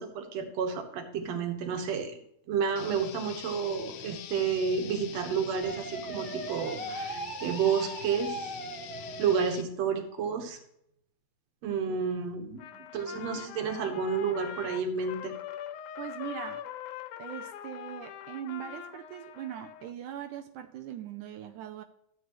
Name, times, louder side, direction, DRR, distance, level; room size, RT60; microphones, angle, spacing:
voice 1, 0.0-2.1 2.5-8.5 9.2-10.6 11.6-12.7 12.9-15.3, right 6 dB, 60° right, 5 dB, 2.4 m, -30 dB
sound 1, 2.8-9.6, left 11 dB, 75° left, 1.7 m, -44 dB
sound 2, 5.6-9.7, right 2 dB, 20° right, 1.8 m, -39 dB
Trumpet, 12.6-19.9, left 10 dB, 90° left, 2.1 m, -42 dB
voice 2, 12.7-13.3 16.0-16.7 17.2-21.8, right 11 dB, 85° right, 6 dB, 2.2 m, -41 dB
14.0 x 8.2 x 3.1 m, 0.74 s
omnidirectional pair, 3.5 m